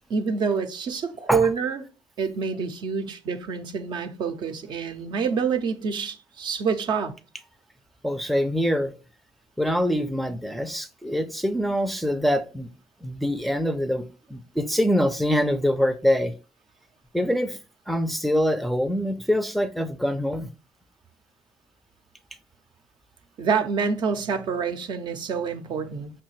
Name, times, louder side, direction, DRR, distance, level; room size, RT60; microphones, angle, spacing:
voice 1, 0.1-1.8 2.2-7.1 23.4-26.1, right 5 dB, 65° right, 0.5 m, -27 dB
voice 2, 8.0-8.9 9.6-12.7 13.0-14.0 14.3-16.3 17.1-17.6 17.9-20.5, equal, ahead, 0.4 m, -24 dB
5.4 x 2.2 x 3.1 m
supercardioid pair, 70°, 8 cm